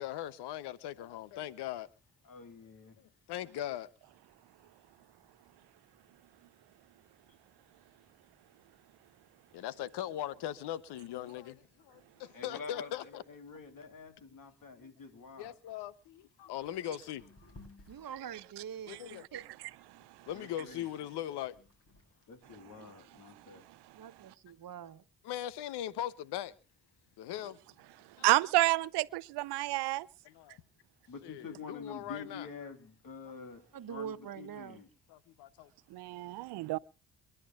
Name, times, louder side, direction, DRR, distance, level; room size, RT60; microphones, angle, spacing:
voice 1, 0.0-1.9 3.0-3.9 9.5-13.2 15.4-17.2 18.9-19.2 20.3-21.5 25.2-26.5 27.2-27.6 28.2-28.3 30.2-30.6 31.2-32.5 35.1-35.7, left 12 dB, 85° left, 0.8 m, -40 dB
voice 2, 2.2-3.0 12.2-15.5 16.4-16.5 20.3-20.9 22.3-23.6 31.1-33.6 33.9-34.9, left 5 dB, 55° left, 3.2 m, -47 dB
sound 1, 17.1-19.7 20.3-22.8, left 2 dB, 35° left, 7.2 m, -59 dB
voice 3, 17.9-19.5 23.9-25.0 33.7-34.8, right 8 dB, 60° right, 1.1 m, -44 dB
voice 4, 28.2-30.1 35.9-36.8, right 18 dB, 85° right, 0.6 m, -29 dB
28.5 x 11.0 x 2.4 m
supercardioid pair, 55°, 39 cm